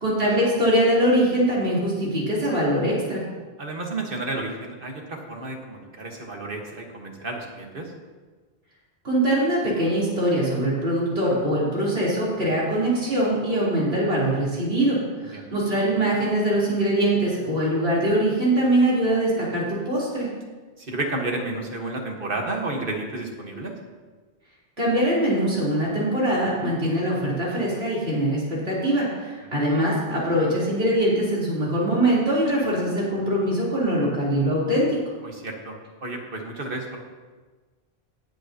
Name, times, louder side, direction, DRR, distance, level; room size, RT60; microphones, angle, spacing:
voice 1, 0.0-3.2 9.0-20.3 24.8-35.0, right 1 dB, 80° right, -7 dB, 3.9 m, -22 dB
voice 2, 3.6-7.9 12.4-12.6 15.2-15.5 20.8-23.7 29.4-29.6 35.2-37.0, right 2 dB, 60° right, 1 dB, 1.7 m, -32 dB
18.5 x 7.9 x 2.9 m, 1.4 s
omnidirectional pair, 1.0 m